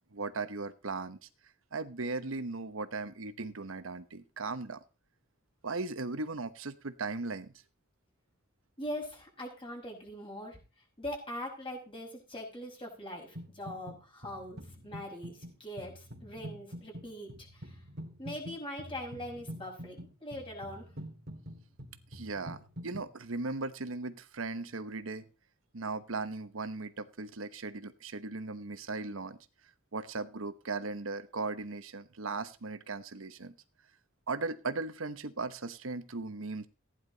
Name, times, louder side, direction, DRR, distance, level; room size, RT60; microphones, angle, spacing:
voice 1, 0.1-1.3 1.7-4.8 5.6-7.5 22.1-25.3 25.7-29.4 29.9-33.5 34.3-36.7, right 3 dB, 80° right, 11 dB, 1.0 m, -37 dB
voice 2, 8.8-10.6 11.0-17.7 18.2-20.9, left 1 dB, 25° left, 1 dB, 5.7 m, -42 dB
sound 1, 13.3-14.0 14.2-23.1, equal, 55° right, 2.6 m, -46 dB
15.5 x 10.5 x 4.0 m, 0.32 s
head